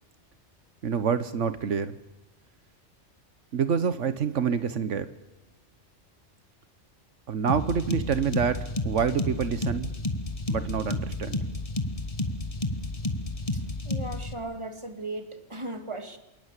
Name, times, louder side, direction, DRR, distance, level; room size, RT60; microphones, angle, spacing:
voice 1, 0.8-2.0 3.5-5.1 7.3-9.9 10.5-11.4, right 7 dB, 85° right, 12 dB, 1.5 m, -27 dB
sound 1, 7.5-14.3, left 2 dB, 30° left, 1.6 m, -31 dB
voice 2, 13.5-16.2, right 2 dB, 25° right, 6 dB, 2.4 m, -37 dB
28.0 x 19.0 x 8.4 m, 1.0 s
omnidirectional pair, 1.2 m